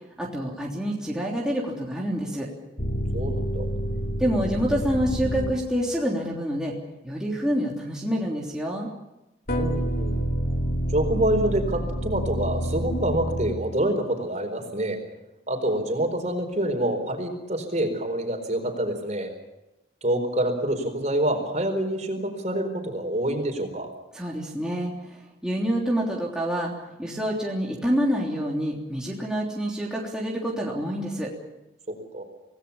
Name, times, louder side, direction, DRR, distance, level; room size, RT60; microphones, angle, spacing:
voice 1, 0.2-2.5 4.2-6.7 7.0-8.9 24.1-26.7 27.0-31.3, equal, 5° right, -4 dB, 3.3 m, -27 dB
sound 1, 2.8-5.9 9.5-14.1, equal, 50° left, 2.6 m, -28 dB
voice 2, 3.1-3.7 9.6-10.3 10.9-15.0 15.5-19.3 20.0-23.9 32.1-32.2, right 1 dB, 40° right, 5 dB, 4.5 m, -26 dB
27.0 x 18.5 x 7.2 m, 0.96 s
head